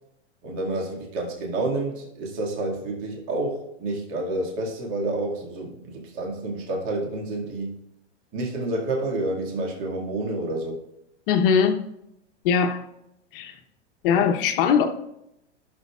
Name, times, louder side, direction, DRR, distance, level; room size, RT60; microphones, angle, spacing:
voice 1, 0.4-7.7 8.3-10.8, right 2 dB, 35° right, 2.1 m, -29 dB
voice 2, 11.3-11.9 12.4-12.8 13.3-13.5 14.0-14.9, left 7 dB, 50° left, 1.0 m, -20 dB
16.0 x 6.5 x 2.4 m
hypercardioid pair, 130°, 36 cm